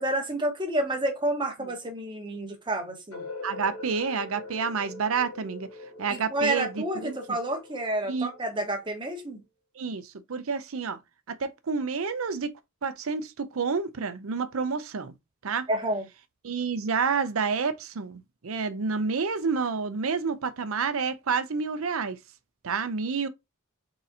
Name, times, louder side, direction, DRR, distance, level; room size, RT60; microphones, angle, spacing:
voice 1, 0.0-3.3 6.1-9.4 15.7-16.0, right 1 dB, 25° right, 1.2 m, -29 dB
sound 1, 3.1-9.0, left 2 dB, 80° left, 1.4 m, -43 dB
voice 2, 3.4-5.7 6.0-7.4 8.1-8.3 9.8-11.0 11.3-12.5 12.8-15.1 15.4-15.7 16.4-22.2 22.6-23.3, right 5 dB, 85° right, 0.6 m, -29 dB
4.1 x 3.8 x 2.7 m
head